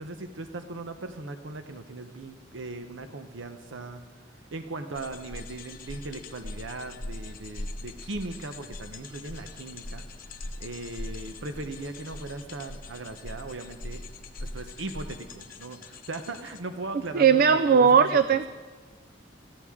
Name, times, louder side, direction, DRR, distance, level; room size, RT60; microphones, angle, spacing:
voice 1, 0.0-4.0 4.3-10.0 10.6-14.0 14.4-18.4, right 2 dB, 85° right, 7 dB, 0.8 m, -38 dB
sound 1, 4.9-16.6, left 2 dB, 50° left, 1.1 m, -41 dB
voice 2, 17.1-18.5, right 6 dB, 50° right, 13 dB, 0.4 m, -18 dB
21.5 x 14.5 x 3.7 m, 1.4 s
head